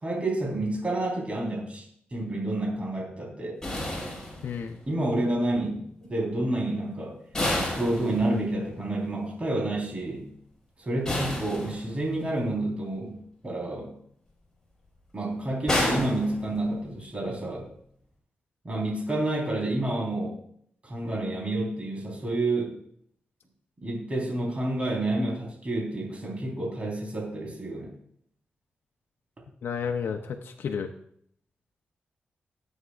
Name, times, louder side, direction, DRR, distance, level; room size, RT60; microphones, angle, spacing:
voice 1, 0.0-1.8 2.1-3.6 4.9-5.7 6.1-7.2 7.7-10.3 10.8-13.2 13.4-13.9 15.1-17.6 18.6-20.4 20.8-22.7 23.8-27.9, right 2 dB, 35° right, -2 dB, 4.0 m, -29 dB
sound 1, 3.6-4.9 7.3-8.7 11.0-12.2 15.7-17.0, left 1 dB, 15° left, 4.7 m, -30 dB
voice 2, 4.4-4.8 29.6-30.9, left 6 dB, 80° left, 4 dB, 0.6 m, -31 dB
17.5 x 8.0 x 2.5 m, 0.65 s
cardioid pair, 75°, 4 cm